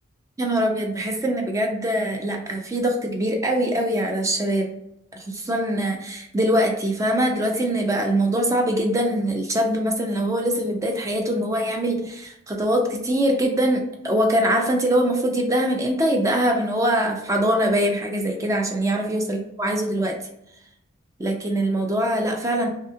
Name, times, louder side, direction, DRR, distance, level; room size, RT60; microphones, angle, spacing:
voice 1, 0.4-4.7 5.1-20.2 21.2-22.7, right 1 dB, 15° right, 2 dB, 0.4 m, -23 dB
2.7 x 2.2 x 2.6 m, 0.80 s
head